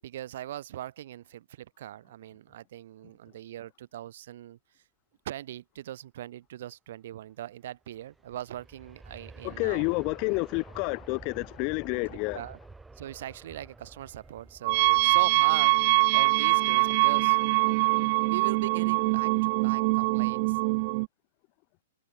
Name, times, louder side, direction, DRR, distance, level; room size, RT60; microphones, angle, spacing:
voice 1, 0.0-4.6 5.2-9.9 12.3-12.6 13.0-15.7 16.1-17.4 18.3-20.6, right 12 dB, 60° right, 7.3 m, -40 dB
Aircraft, 7.7-18.6 19.0-19.1, right 3 dB, 10° right, 7.4 m, -51 dB
voice 2, 9.4-12.4, left 33 dB, 40° left, 4.7 m, -29 dB
sound 1, 14.6-21.1, right 27 dB, 45° right, 2.5 m, -23 dB
hypercardioid pair, 120°, 0 cm